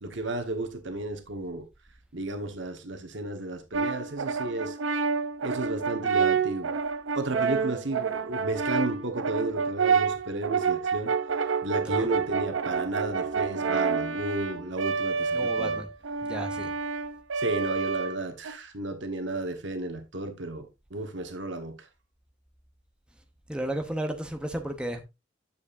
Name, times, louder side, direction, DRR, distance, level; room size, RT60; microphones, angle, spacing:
voice 1, 0.0-1.7 2.1-4.8 5.4-6.7 7.1-11.1 11.6-15.8 17.4-21.9, right 2 dB, 70° right, 1.3 m, -33 dB
Brass instrument, 3.7-18.5, right 5 dB, 85° right, 0.7 m, -28 dB
voice 2, 15.3-15.9 16.2-16.7 23.5-25.0, right 1 dB, 5° right, 0.9 m, -33 dB
9.5 x 7.1 x 2.6 m
head